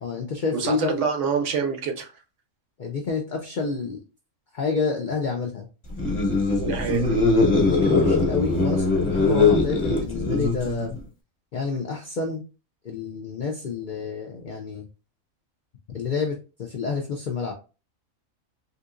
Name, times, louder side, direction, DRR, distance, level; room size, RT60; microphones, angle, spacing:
voice 1, 0.0-1.0 2.8-4.0 4.5-5.7 7.5-11.0 11.5-12.4 12.8-14.8 15.9-17.5, left 4 dB, 70° left, 2 dB, 0.4 m, -29 dB
voice 2, 0.5-2.1 6.6-7.2, right 6 dB, 65° right, 5 dB, 0.9 m, -26 dB
sound 1, 5.9-11.0, left 3 dB, 25° left, 0.9 m, -21 dB
3.6 x 2.7 x 2.4 m, 0.33 s
omnidirectional pair, 1.4 m